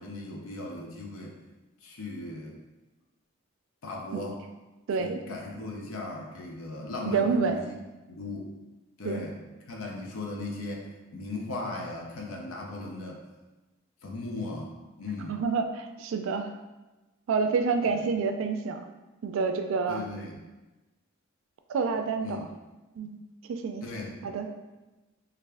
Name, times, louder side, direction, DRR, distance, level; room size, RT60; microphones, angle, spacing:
voice 1, 0.0-1.4 1.8-2.6 3.8-4.4 5.0-7.7 8.1-8.5 9.0-13.2 14.0-15.4 17.8-18.0 19.9-20.4 22.2-22.5 23.8-24.2, left 2 dB, 90° left, -1 dB, 0.6 m, -38 dB
voice 2, 4.9-5.2 7.1-7.5 9.0-9.2 15.3-16.5 17.3-18.8 19.2-20.0 21.7-22.4 23.0-23.2 23.5-23.8 24.2-24.5, right 5 dB, 70° right, 6 dB, 0.3 m, -28 dB
3.3 x 2.4 x 3.4 m, 1.1 s
head